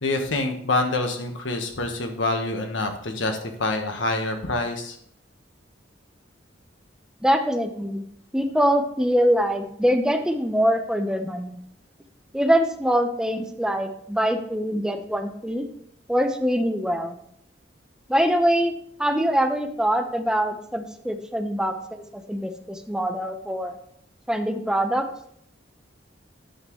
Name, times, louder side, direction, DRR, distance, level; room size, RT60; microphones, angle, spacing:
voice 1, 0.0-5.0, left 2 dB, 85° left, 4 dB, 1.4 m, -26 dB
voice 2, 7.2-8.0 8.3-11.6 12.3-15.7 16.1-17.1 18.1-18.7 19.0-23.8 24.3-25.1, equal, 5° right, 6 dB, 0.8 m, -23 dB
10.5 x 7.2 x 3.2 m, 0.69 s
head